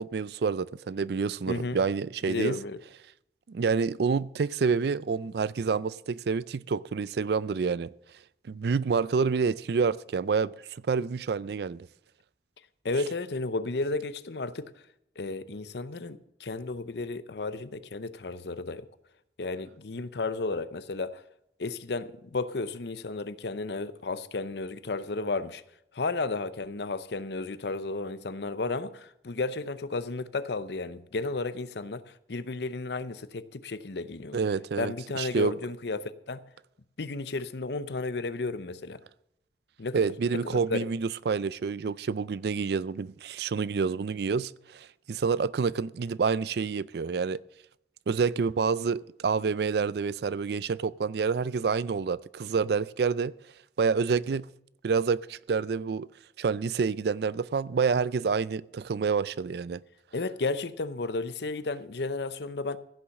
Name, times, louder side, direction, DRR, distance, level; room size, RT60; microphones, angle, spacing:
voice 1, 0.0-2.6 3.5-7.9 8.5-11.9 34.3-35.6 39.9-47.4 48.1-53.3 53.8-54.5 54.8-56.1 56.4-59.8, right 5 dB, 60° right, 0.4 m, -28 dB
voice 2, 1.5-1.8 2.3-2.8 12.8-14.7 15.2-18.9 19.4-21.2 21.6-25.6 25.9-32.0 32.3-34.4 34.8-36.4 37.0-39.0 39.8-40.0 40.4-40.8 60.1-62.8, left 3 dB, 70° left, 0.7 m, -33 dB
15.5 x 7.1 x 6.5 m
head